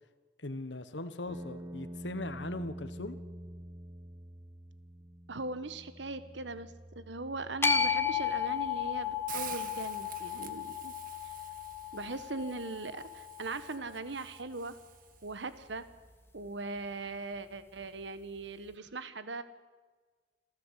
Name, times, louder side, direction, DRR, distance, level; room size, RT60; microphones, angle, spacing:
voice 1, 0.4-3.2, left 2 dB, 70° left, 10 dB, 1.4 m, -40 dB
sound 1, 1.3-15.3, equal, 15° right, 1.3 m, -50 dB
voice 2, 5.3-10.9 11.9-14.8 15.2-15.8 16.3-19.4, right 3 dB, 70° right, 12 dB, 1.4 m, -40 dB
sound 2, 7.6-13.9, left 7 dB, 15° left, 1.7 m, -34 dB
Hiss, 9.3-15.3, right 9 dB, 50° right, 1.6 m, -49 dB
26.5 x 15.0 x 8.3 m, 1.4 s
head